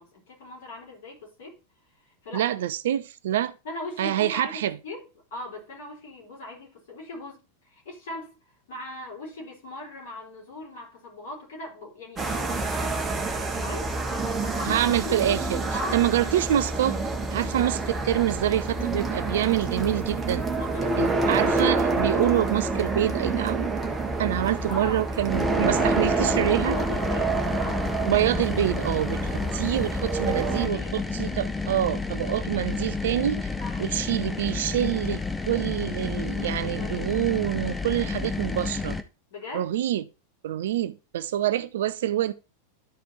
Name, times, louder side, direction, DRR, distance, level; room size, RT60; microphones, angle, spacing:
voice 1, 0.0-1.6 2.2-2.5 3.6-5.0 5.3-8.4 8.7-13.1 13.5-15.2 15.7-16.1 20.4-21.5 24.7-25.0 25.7-27.3 27.6-27.8 30.5-31.0 33.6-33.9 36.4-37.1 39.3-39.7, left 2 dB, 60° left, 4.3 m, -39 dB
voice 2, 2.3-3.5 4.0-4.8 14.7-15.6 15.9-17.0 17.3-20.4 21.0-23.7 24.2-26.8 28.1-29.2 29.5-33.5 33.8-39.0 39.5-40.0 40.4-42.3, right 12 dB, 60° right, 0.4 m, -26 dB
sound 1, 12.2-30.7, right 3 dB, 15° right, 1.5 m, -28 dB
sound 2, 25.3-39.0, left 4 dB, 10° left, 0.7 m, -31 dB
12.0 x 5.0 x 3.0 m
figure-of-eight pair, 90°, 0 cm